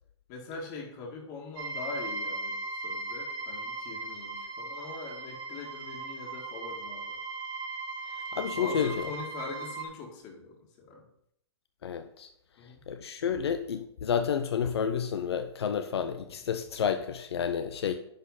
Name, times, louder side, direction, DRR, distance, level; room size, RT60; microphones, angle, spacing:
voice 1, 0.3-7.2 8.5-11.1 12.6-12.8, left 4 dB, 40° left, -1 dB, 2.1 m, -42 dB
sound 1, 1.6-9.8, right 3 dB, 55° right, 2.0 m, -38 dB
voice 2, 8.1-9.1 11.8-12.3 12.9-18.0, left 7 dB, 65° left, 9 dB, 0.7 m, -30 dB
10.5 x 4.1 x 5.5 m, 0.73 s
hypercardioid pair, 125°, 14 cm